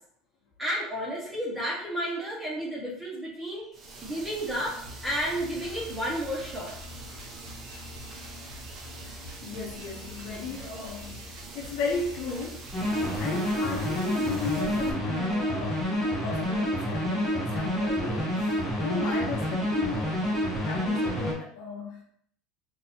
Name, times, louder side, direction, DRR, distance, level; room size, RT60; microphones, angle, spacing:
voice 1, 0.6-3.7 4.0-4.8 5.0-6.7, equal, 10° right, -5 dB, 1.6 m, -31 dB
sound 1, 3.7-14.9, right 3 dB, 40° right, 0.8 m, -44 dB
Drum kit, 4.8-13.2, left 2 dB, 55° right, 1.0 m, -46 dB
voice 2, 9.0-18.6 18.8-22.0, left 4 dB, 65° left, 0 dB, 0.8 m, -35 dB
sound 2, 12.7-21.3, equal, 10° left, 1.2 m, -28 dB
3.9 x 2.8 x 2.8 m, 0.66 s
supercardioid pair, 115°, 0 cm